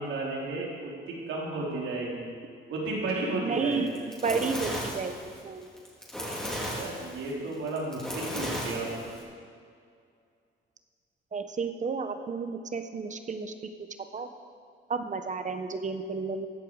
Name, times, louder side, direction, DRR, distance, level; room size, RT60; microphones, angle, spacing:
voice 1, 0.0-2.3 2.7-3.8 6.7-9.1, right 2 dB, 80° right, -3 dB, 3.9 m, -33 dB
voice 2, 3.4-3.9 4.2-5.2 5.4-5.7 11.3-13.5 14.1-14.3 14.9-16.5, right 4 dB, 40° right, 8 dB, 1.1 m, -31 dB
Fire, 3.7-9.2, equal, 5° left, 4.0 m, -35 dB
15.5 x 11.5 x 4.9 m, 2.2 s
cardioid pair, 90°, 20 cm